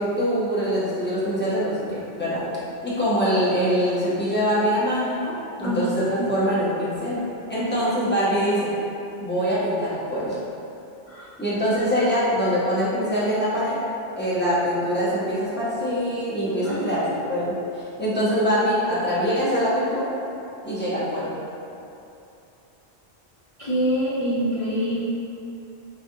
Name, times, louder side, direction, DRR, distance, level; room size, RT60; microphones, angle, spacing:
voice 1, 0.0-2.4 2.8-7.2 7.5-8.7 9.2-10.4 11.4-13.8 14.2-20.1 20.6-21.3, equal, 10° left, -10 dB, 0.6 m, -24 dB
voice 2, 5.6-6.3 11.1-11.3 16.6-17.3 23.6-25.0, equal, 55° left, -9 dB, 0.4 m, -26 dB
4.6 x 2.4 x 2.7 m, 2.8 s
omnidirectional pair, 1.2 m